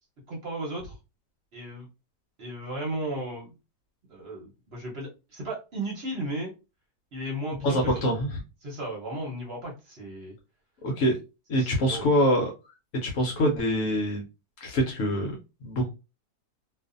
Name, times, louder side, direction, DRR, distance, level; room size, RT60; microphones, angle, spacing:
voice 1, 0.3-0.9 1.5-1.9 2.4-3.5 4.1-6.5 7.1-8.0 8.6-10.3 11.5-12.0, right 1 dB, 45° right, -2 dB, 1.0 m, -35 dB
voice 2, 7.6-8.4 10.8-11.2 11.5-12.5 13.0-14.2 14.6-15.3 15.6-15.9, equal, 65° left, 2 dB, 0.9 m, -24 dB
2.5 x 2.4 x 2.5 m, 0.28 s
omnidirectional pair, 1.7 m